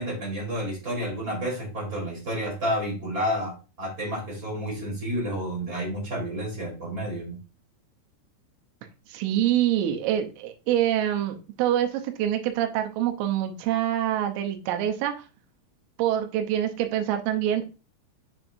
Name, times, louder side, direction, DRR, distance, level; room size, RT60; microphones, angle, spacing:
voice 1, 0.0-7.3, equal, 20° right, -2 dB, 3.2 m, -30 dB
voice 2, 9.1-15.1 16.0-17.7, right 11 dB, 85° right, 5 dB, 3.4 m, -25 dB
7.6 x 6.8 x 2.6 m, 0.33 s
omnidirectional pair, 5.5 m